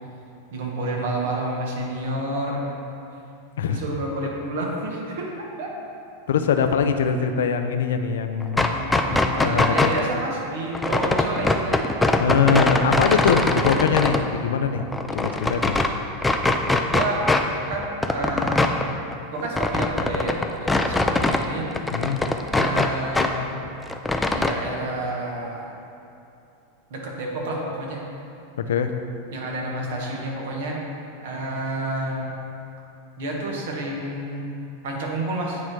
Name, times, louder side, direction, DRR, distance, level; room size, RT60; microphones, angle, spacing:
voice 1, 0.5-2.7 3.7-5.7 8.7-12.0 16.9-17.3 17.7-18.8 19.3-21.7 22.5-23.5 24.3-25.7 26.9-28.1 29.3-30.8 31.2-32.4 33.2-34.5 34.8-35.6, right 1 dB, 70° right, -2 dB, 1.4 m, -29 dB
voice 2, 6.3-9.0 9.4-9.9 12.2-14.9 15.1-15.8 21.9-22.2 28.7-28.9, left 6 dB, 85° left, 7 dB, 0.4 m, -22 dB
sound 1, 8.4-10.0 10.7-14.2 14.6-15.9 16.2-17.5 17.7-21.4 21.7-23.3 23.6-24.5, left 2 dB, 10° left, 0.4 m, -22 dB
9.2 x 3.1 x 4.7 m, 2.6 s
hypercardioid pair, 115°, 0 cm